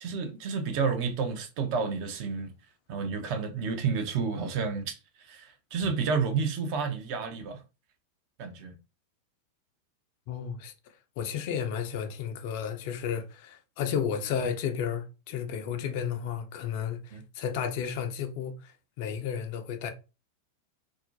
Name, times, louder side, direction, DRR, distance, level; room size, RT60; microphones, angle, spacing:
voice 1, 0.0-2.5 2.9-7.6 8.4-8.7 17.1-17.2, right 5 dB, 45° right, 0.5 m, -30 dB
voice 2, 10.3-10.7 11.2-18.7 19.0-19.9, left 7 dB, 50° left, 0.4 m, -32 dB
2.3 x 2.1 x 2.6 m
figure-of-eight pair, 90°, 0 cm